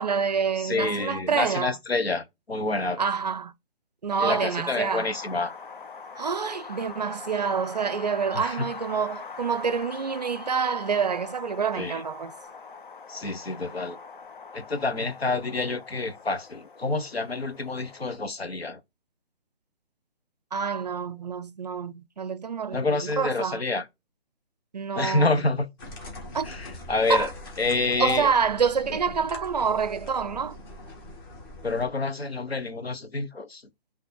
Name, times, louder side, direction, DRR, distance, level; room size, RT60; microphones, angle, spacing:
voice 1, 0.0-1.8 3.0-3.5 4.0-5.1 6.1-12.3 20.5-23.6 24.7-25.3 26.3-26.5 27.1-27.3 28.0-30.6, right 6 dB, 45° right, 0.5 m, -27 dB
voice 2, 0.6-3.0 4.2-5.6 8.3-8.7 11.8-12.0 13.1-14.0 14.5-18.8 22.7-23.9 24.9-25.7 26.4-27.3 27.6-28.3 31.6-33.6, left 3 dB, 85° left, 1.4 m, -28 dB
Wind, 4.1-18.2, left 5 dB, 55° left, 1.0 m, -42 dB
sound 1, 25.8-31.9, left 1 dB, 20° left, 1.8 m, -42 dB
8.2 x 3.3 x 4.3 m
figure-of-eight pair, 150°, 30 cm